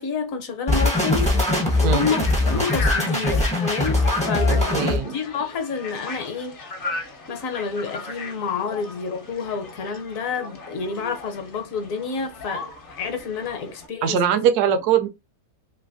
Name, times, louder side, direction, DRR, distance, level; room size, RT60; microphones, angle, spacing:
voice 1, 0.0-1.3 1.8-6.6 7.3-14.2, left 5 dB, 65° left, 1.0 m, -29 dB
sound 1, 0.7-5.0, left 2 dB, 10° left, 0.4 m, -21 dB
sound 2, 1.3-13.9, left 3 dB, 50° left, 0.7 m, -35 dB
voice 2, 4.5-5.2 14.0-15.1, right 8 dB, 75° right, 1.1 m, -21 dB
3.2 x 2.9 x 2.5 m
omnidirectional pair, 1.8 m